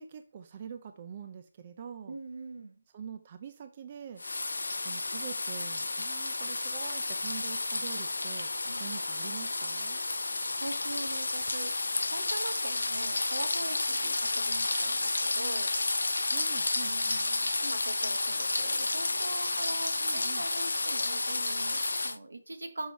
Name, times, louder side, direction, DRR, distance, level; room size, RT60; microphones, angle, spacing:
voice 1, 0.0-2.2 2.9-4.2 4.8-8.5 8.8-10.0 14.0-14.1 16.3-17.2 20.0-20.5, right 7 dB, 35° right, 8 dB, 0.5 m, -44 dB
voice 2, 2.1-2.8 8.7-8.8 10.6-11.7 12.1-15.7 16.8-22.9, right 2 dB, 80° right, 7 dB, 1.1 m, -42 dB
sound 1, 4.2-22.2, left 2 dB, 80° left, 0.4 m, -31 dB
5.6 x 4.0 x 4.6 m, 0.39 s
figure-of-eight pair, 155°, 0 cm